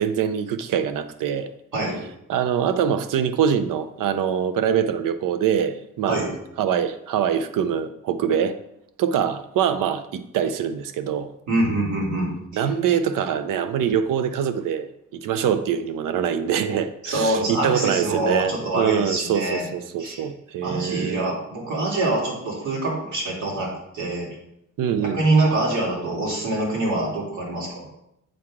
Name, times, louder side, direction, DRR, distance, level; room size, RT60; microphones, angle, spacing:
voice 1, 0.0-1.5 2.3-6.2 6.6-8.6 9.0-11.3 12.5-21.3 24.8-25.2, right 8 dB, 80° right, 11 dB, 0.6 m, -24 dB
voice 2, 11.5-12.7 17.0-19.7 20.0-20.2 20.6-24.3 25.0-27.8, right 2 dB, 65° right, -4 dB, 2.7 m, -25 dB
7.3 x 4.8 x 3.6 m, 0.78 s
cardioid pair, 120°, 32 cm